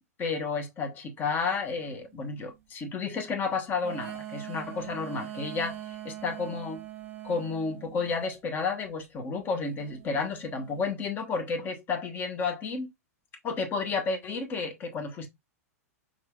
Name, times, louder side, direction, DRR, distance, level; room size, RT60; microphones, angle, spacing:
voice 1, 0.2-6.8 7.2-12.9 13.4-15.3, left 4 dB, 25° left, 1.0 m, -31 dB
sound 1, 1.2-2.5 3.8-8.3 9.8-10.9, right 12 dB, 25° right, 1.1 m, -43 dB
6.0 x 3.0 x 2.3 m
figure-of-eight pair, 100°, 8 cm